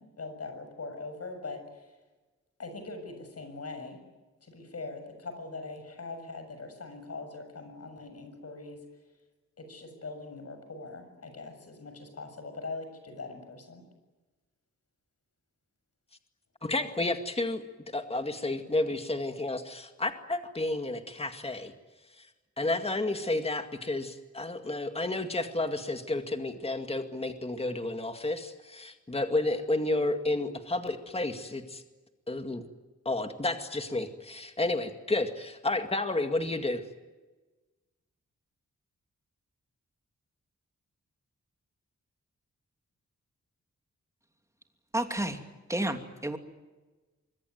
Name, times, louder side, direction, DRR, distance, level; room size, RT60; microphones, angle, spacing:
voice 1, 0.0-2.0 2.6-4.0 4.4-8.8 9.6-13.8, left 3 dB, 55° left, 8 dB, 7.0 m, -42 dB
voice 2, 16.6-21.7 22.6-31.8 32.3-32.6 33.1-36.8, left 2 dB, 20° left, 7 dB, 2.1 m, -31 dB
voice 3, 44.9-45.4 45.7-46.4, right 1 dB, 10° right, 5 dB, 2.8 m, -30 dB
25.0 x 23.0 x 9.4 m, 1.2 s
wide cardioid pair, 115°, 29 cm